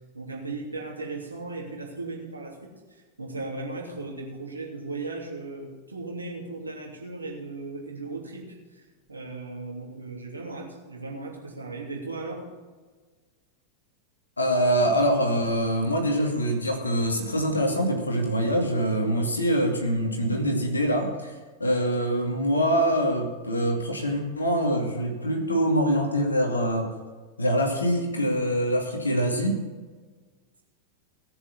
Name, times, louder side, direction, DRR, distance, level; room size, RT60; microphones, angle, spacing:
voice 1, 0.1-12.4, right 3 dB, 80° right, -1 dB, 3.0 m, -37 dB
voice 2, 14.4-26.9 27.4-29.6, equal, 80° left, 2 dB, 2.5 m, -24 dB
18.0 x 7.1 x 6.9 m, 1.4 s
figure-of-eight pair, 90°, 0 cm